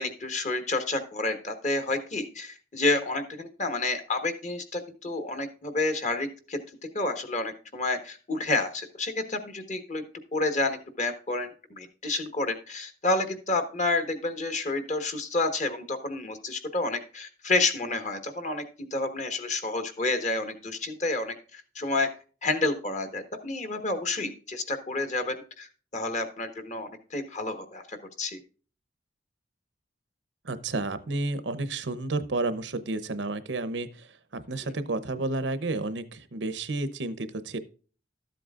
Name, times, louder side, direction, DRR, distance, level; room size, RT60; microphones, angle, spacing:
voice 1, 0.0-6.6 6.9-10.0 10.3-22.1 22.4-28.4, left 2 dB, 40° left, 8 dB, 1.3 m, -29 dB
voice 2, 30.4-34.1 34.3-37.6, right 2 dB, 85° right, 13 dB, 0.8 m, -31 dB
13.0 x 7.7 x 2.4 m, 0.38 s
head